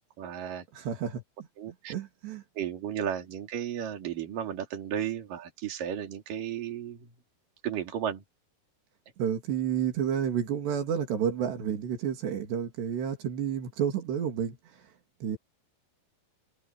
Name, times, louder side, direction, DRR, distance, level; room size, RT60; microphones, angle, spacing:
voice 1, 0.2-0.7 1.6-1.9 2.6-7.1 7.6-8.2, right 9 dB, 55° right, 4.6 m, -34 dB
voice 2, 0.7-1.2 1.9-2.4 9.2-14.6 15.2-15.4, right 8 dB, 85° right, 5.0 m, -30 dB
omnidirectional pair, 4.7 m